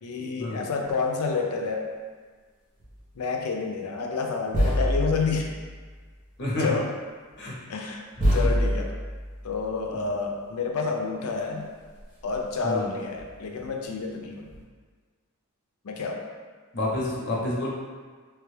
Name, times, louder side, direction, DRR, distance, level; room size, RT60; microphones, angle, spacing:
voice 1, 0.0-1.9 3.2-5.5 6.6-6.9 7.7-8.0 8.3-8.9 9.4-11.6 12.2-14.5 15.8-16.2, left 4 dB, 75° left, 2 dB, 0.4 m, -29 dB
sound 1, 0.8-1.0 2.8-3.0 4.5-6.2 7.3-7.4 8.2-9.9 11.5-11.6 11.8-12.4 13.2-13.7 14.4-14.6, equal, 35° right, 0.8 m, -27 dB
voice 2, 16.7-17.7, left 1 dB, 50° left, -5 dB, 0.8 m, -29 dB
3.3 x 2.3 x 3.1 m, 1.5 s
head